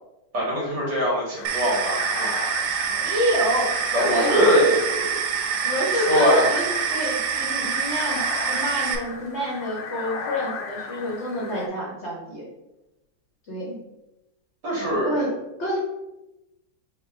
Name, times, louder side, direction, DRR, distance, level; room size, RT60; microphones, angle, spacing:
voice 1, 0.3-2.3 2.7-2.8 3.9-5.1 5.9-6.4 14.6-15.2, equal, 65° right, -5 dB, 2.1 m, -22 dB
sound 1, 1.3-11.7, left 5 dB, 75° left, 1.2 m, -35 dB
sound 2, 1.4-8.9, right 7 dB, 85° right, 1.3 m, -26 dB
voice 2, 2.9-4.7 5.6-12.5 13.5-13.8 14.9-15.3 15.6-15.8, left 1 dB, 55° left, -4 dB, 0.8 m, -27 dB
4.1 x 2.2 x 4.2 m, 0.95 s
omnidirectional pair, 2.0 m